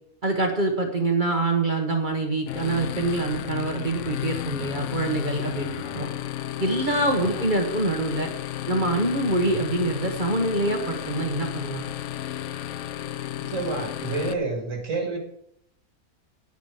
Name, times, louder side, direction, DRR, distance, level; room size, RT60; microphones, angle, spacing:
voice 1, 0.2-6.1 6.6-8.3 8.7-11.8, right 2 dB, 35° right, 2 dB, 1.4 m, -25 dB
sound 1, 2.5-14.3, left 12 dB, 65° left, 0.8 m, -33 dB
voice 2, 13.4-15.2, right 3 dB, 60° right, 2 dB, 2.6 m, -30 dB
16.5 x 6.1 x 4.9 m, 0.72 s
omnidirectional pair, 1.5 m